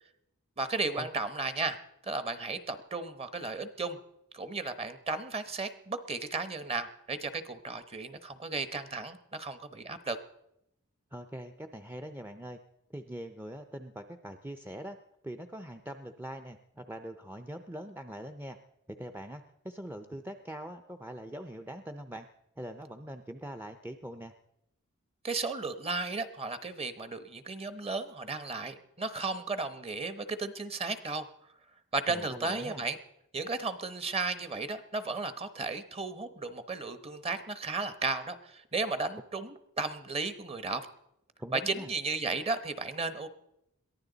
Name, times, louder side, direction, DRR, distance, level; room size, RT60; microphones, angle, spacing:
voice 1, 0.6-4.0 4.3-10.2 25.2-31.3 31.9-33.0 33.3-40.9 41.5-43.3, right 3 dB, 25° right, 11 dB, 1.0 m, -34 dB
voice 2, 11.1-12.6 12.9-15.0 15.2-18.6 19.0-22.3 22.6-24.3 32.1-32.8 41.4-41.9, right 1 dB, 10° right, 6 dB, 0.6 m, -42 dB
22.5 x 15.0 x 4.0 m, 0.81 s
head